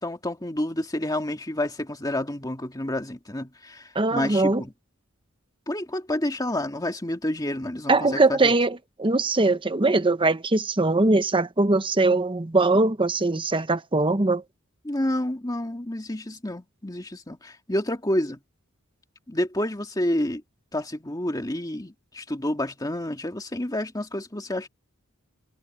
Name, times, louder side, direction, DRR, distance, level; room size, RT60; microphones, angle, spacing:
voice 1, 0.0-4.7 5.7-8.5 14.8-18.4 19.3-20.4 20.7-24.7, left 1 dB, 20° left, 2.1 m, -29 dB
voice 2, 3.9-4.6 7.9-14.4, right 2 dB, 25° right, 0.9 m, -21 dB
head